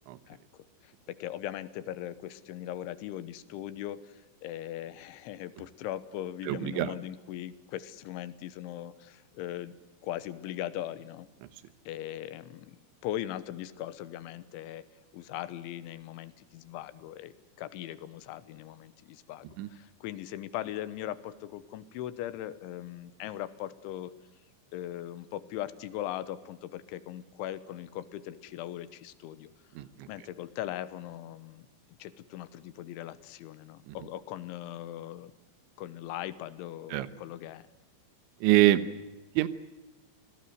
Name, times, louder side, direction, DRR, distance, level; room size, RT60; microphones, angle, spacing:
voice 1, 0.8-9.8 10.0-11.3 11.9-12.8 13.0-14.9 15.1-24.1 24.7-29.5 30.1-31.7 32.0-35.3 35.8-37.7, left 12 dB, 85° left, 15 dB, 3.5 m, -39 dB
voice 2, 6.5-6.9 19.6-19.7 29.8-29.9 33.9-34.0 36.9-37.1 38.4-38.8 39.4-39.5, right 16 dB, 80° right, 14 dB, 3.3 m, -24 dB
28.0 x 18.5 x 7.9 m, 1.1 s
omnidirectional pair, 5.3 m